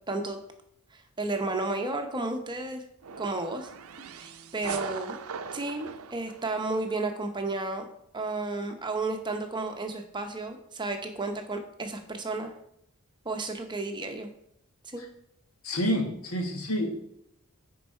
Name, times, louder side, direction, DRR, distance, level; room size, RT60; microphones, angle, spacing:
voice 1, 0.1-0.4 0.9-2.8 3.2-3.7 4.0-5.1 5.5-7.9 8.1-12.5 13.2-14.3 14.8-15.0, right 2 dB, 20° right, 5 dB, 0.8 m, -32 dB
sound 1, 3.0-7.1, right 6 dB, 80° right, 0.6 m, -40 dB
voice 2, 15.6-16.9, equal, 80° left, 3 dB, 1.5 m, -28 dB
10.0 x 4.6 x 4.4 m, 0.75 s
head